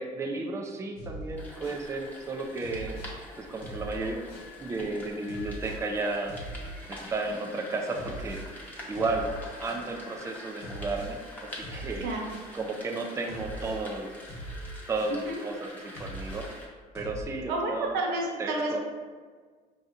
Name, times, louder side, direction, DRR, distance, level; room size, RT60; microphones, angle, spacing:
voice 1, 0.0-3.0 3.4-4.2 4.6-6.4 6.9-8.4 8.9-9.3 9.6-11.2 11.7-12.1 12.5-14.1 14.9-16.5 16.9-17.9 18.4-18.8, right 3 dB, 15° right, 1 dB, 0.4 m, -33 dB
sound 1, 1.0-1.9 2.6-3.2 3.6-4.5 5.3-5.9 6.3-7.2 7.9-8.5 8.9-9.9 10.6-11.2 11.6-12.5 13.3-13.8 14.3-15.2 15.9-16.5 16.9-17.2, right 1 dB, 75° left, 0.9 m, -41 dB
sound 2, 1.4-16.7, left 1 dB, 10° left, 0.8 m, -45 dB
voice 2, 12.0-12.3 15.1-15.4 17.5-18.8, right 2 dB, 85° right, 0 dB, 0.7 m, -30 dB
4.6 x 2.7 x 2.5 m, 1.5 s
cardioid pair, 110°, 17 cm